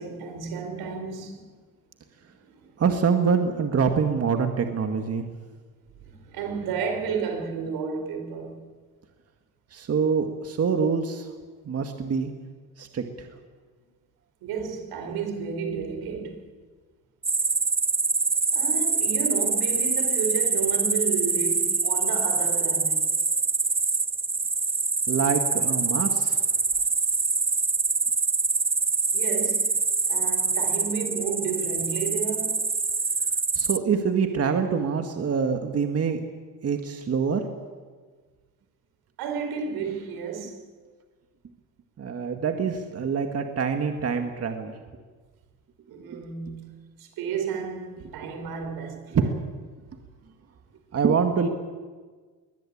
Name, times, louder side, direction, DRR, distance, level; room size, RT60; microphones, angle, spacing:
voice 1, 0.0-1.6 2.4-2.8 6.0-8.6 14.4-16.5 18.5-23.0 29.1-29.7 30.1-32.6 39.2-40.7 45.9-49.2, right 6 dB, 85° right, 4.6 m, -32 dB
voice 2, 2.8-5.2 9.7-11.3 11.7-12.3 12.8-13.3 25.1-26.4 33.5-36.2 36.6-37.4 42.0-44.7 46.1-46.2 49.1-49.3 50.9-51.5, right 6 dB, 40° right, 2.0 m, -25 dB
sound 1, 17.2-33.8, right 4 dB, 15° right, 0.6 m, -25 dB
22.5 x 19.5 x 8.7 m
cardioid pair, 115°, 36 cm